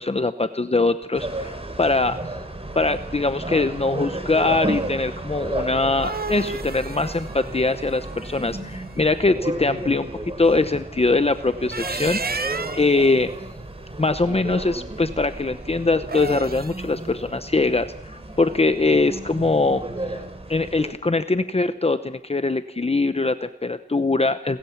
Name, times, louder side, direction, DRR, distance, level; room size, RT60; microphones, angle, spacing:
voice 1, 0.0-2.2 2.7-10.1 10.4-13.3 14.0-19.8 20.5-24.6, left 3 dB, 35° left, 10 dB, 0.8 m, -22 dB
sound 1, 1.1-20.9, right 2 dB, 35° right, 3.6 m, -33 dB
sound 2, 5.7-8.8 11.5-13.0 16.0-16.9, right 4 dB, 55° right, 0.8 m, -32 dB
30.0 x 14.0 x 7.2 m, 0.84 s
wide cardioid pair, 70°, 18 cm